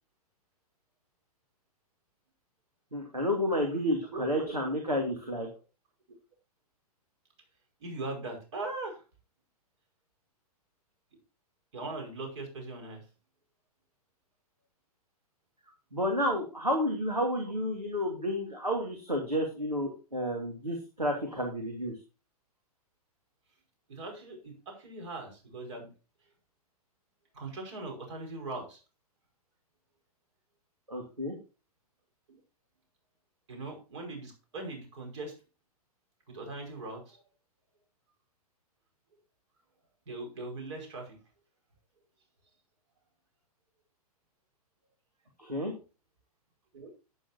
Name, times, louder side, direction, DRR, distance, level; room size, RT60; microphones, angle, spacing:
voice 1, 2.9-5.5 15.9-21.9 30.9-31.3 45.4-45.7, equal, 85° right, 1 dB, 2.6 m, -31 dB
voice 2, 4.1-4.6 7.8-9.0 11.7-13.0 23.9-25.9 27.3-28.8 33.5-35.3 36.3-37.2 40.1-41.2 46.7-46.9, right 2 dB, 50° right, 3 dB, 5.2 m, -40 dB
11.5 x 9.9 x 2.8 m, 0.32 s
figure-of-eight pair, 110°, 20 cm